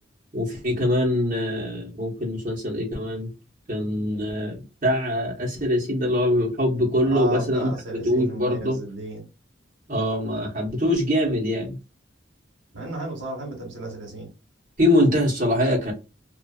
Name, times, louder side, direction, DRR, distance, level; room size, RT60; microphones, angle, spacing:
voice 1, 0.3-3.3 3.7-7.7 8.0-8.8 9.9-11.8 14.8-15.9, left 1 dB, 45° right, 1.1 m, -23 dB
voice 2, 7.0-9.2 12.7-14.3, right 2 dB, 90° right, 1.1 m, -33 dB
2.5 x 2.4 x 2.3 m
head